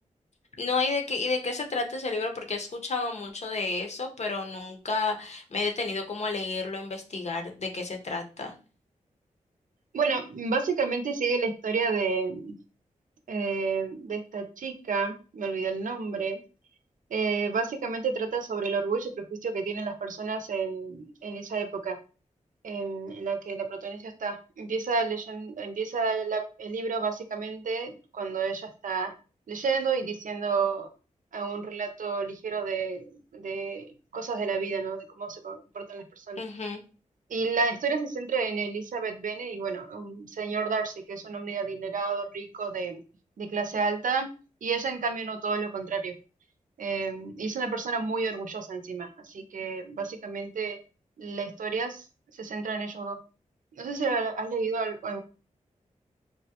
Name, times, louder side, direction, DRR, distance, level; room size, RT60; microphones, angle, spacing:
voice 1, 0.6-8.5 36.4-36.8, left 3 dB, 55° left, 4 dB, 0.7 m, -31 dB
voice 2, 9.9-12.6 13.3-16.4 17.1-19.1 19.4-22.0 22.6-29.1 29.5-30.9 31.3-36.4 37.3-43.0 43.4-44.3 44.6-46.1 46.8-49.1 49.3-50.8 51.2-52.0 52.4-53.2 53.8-55.2, right 4 dB, 75° right, 6 dB, 0.5 m, -30 dB
3.5 x 2.1 x 2.8 m, 0.35 s
cardioid pair, 60°, 14 cm